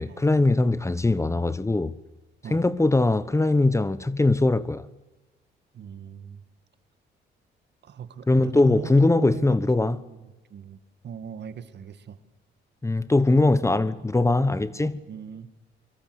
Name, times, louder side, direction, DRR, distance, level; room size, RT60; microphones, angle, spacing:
voice 1, 0.0-2.0 2.5-4.9 8.3-10.0 12.8-15.0, left 2 dB, 15° left, 1.0 m, -21 dB
voice 2, 5.7-6.4 7.8-12.2 15.1-15.5, right 8 dB, 60° right, 2.1 m, -40 dB
24.5 x 24.0 x 8.0 m
cardioid pair, 90°, 20 cm